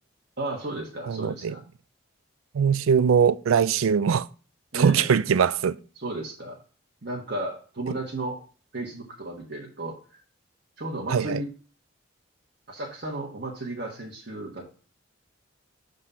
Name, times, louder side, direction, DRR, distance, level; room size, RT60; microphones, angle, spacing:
voice 1, 0.4-1.6 4.7-5.1 5.9-6.6 7.0-8.4 8.7-10.2 10.8-11.5 12.7-14.7, right 2 dB, 55° right, 1.4 m, -34 dB
voice 2, 1.1-1.5 2.5-4.3 4.7-5.8 11.1-11.4, right 7 dB, 90° right, 0.4 m, -21 dB
6.5 x 3.9 x 5.6 m
head